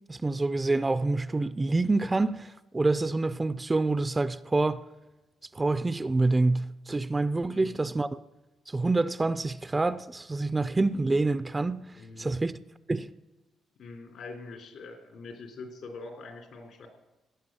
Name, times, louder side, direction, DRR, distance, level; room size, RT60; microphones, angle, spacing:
voice 1, 0.1-4.8 5.5-8.2 8.7-11.8 12.2-12.6 12.9-13.1, right 3 dB, 20° right, 0.5 m, -27 dB
voice 2, 7.4-7.9 12.0-12.4 13.8-16.9, left 3 dB, 70° left, 3.7 m, -44 dB
17.0 x 9.1 x 7.7 m
cardioid pair, 90°, 0 cm